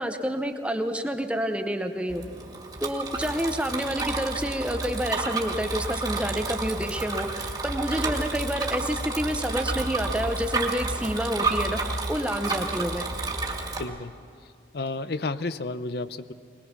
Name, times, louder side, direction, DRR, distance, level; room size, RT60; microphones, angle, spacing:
voice 1, 0.0-2.2 2.8-13.1, equal, 5° right, 6 dB, 0.8 m, -29 dB
Bicycle, 2.1-13.8, right 3 dB, 20° right, 2.1 m, -30 dB
voice 2, 13.8-14.1 14.7-16.3, left 3 dB, 60° left, 13 dB, 0.6 m, -31 dB
22.0 x 20.5 x 5.9 m, 2.6 s
head